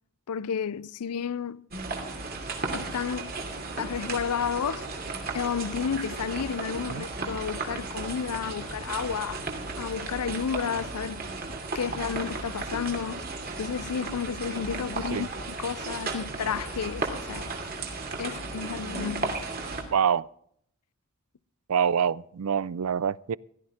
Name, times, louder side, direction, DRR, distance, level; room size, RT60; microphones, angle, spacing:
voice 1, 0.3-1.6 2.7-3.4 3.8-4.9 5.3-9.5 9.8-11.2 11.7-13.3 13.6-15.3 15.6-17.5 18.2-19.4, left 7 dB, 90° left, 0.5 m, -31 dB
sound 1, 1.7-19.8, right 3 dB, 40° right, 2.6 m, -35 dB
voice 2, 19.9-20.3 21.7-23.4, right 7 dB, 75° right, 0.4 m, -26 dB
16.5 x 12.5 x 3.6 m
head